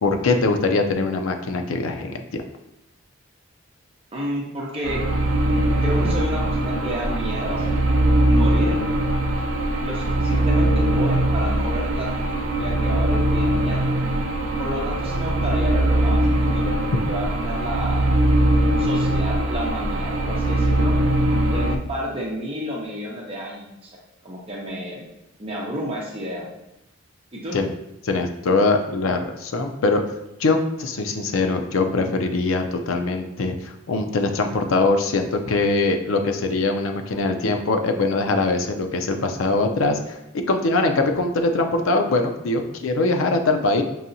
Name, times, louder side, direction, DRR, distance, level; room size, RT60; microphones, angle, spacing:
voice 1, 0.0-2.4 27.5-27.7 28.0-30.0 30.4-40.2 40.5-43.8, left 3 dB, 80° left, 5 dB, 0.5 m, -22 dB
voice 2, 4.1-5.0 5.8-7.7 8.3-8.8 9.8-13.9 14.6-18.1 18.8-21.0 21.5-23.9 24.2-25.1 25.4-26.5 27.3-27.6, equal, 30° right, -4 dB, 0.8 m, -31 dB
sound 1, 4.8-21.8, right 1 dB, 75° right, 0.4 m, -21 dB
5.5 x 2.7 x 2.6 m, 0.87 s
head